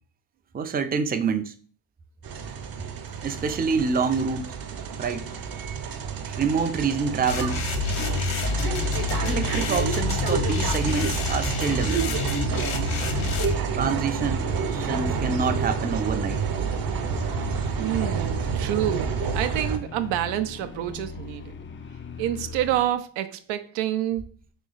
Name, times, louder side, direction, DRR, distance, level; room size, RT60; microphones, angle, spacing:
voice 1, 0.5-1.5 3.2-4.6 5.0-5.3 6.3-7.6 9.2-12.2 13.7-16.4, right 5 dB, 20° right, 0.5 m, -27 dB
sound 1, 2.2-19.8, right 6 dB, 50° right, 0.9 m, -29 dB
sound 2, 7.3-13.6, left 5 dB, 75° left, 0.9 m, -28 dB
sound 3, 8.2-23.0, left 5 dB, 25° left, 0.5 m, -39 dB
voice 2, 17.8-21.6 22.2-24.3, right 12 dB, 75° right, 0.6 m, -28 dB
3.2 x 3.1 x 3.9 m
hypercardioid pair, 55°, 46 cm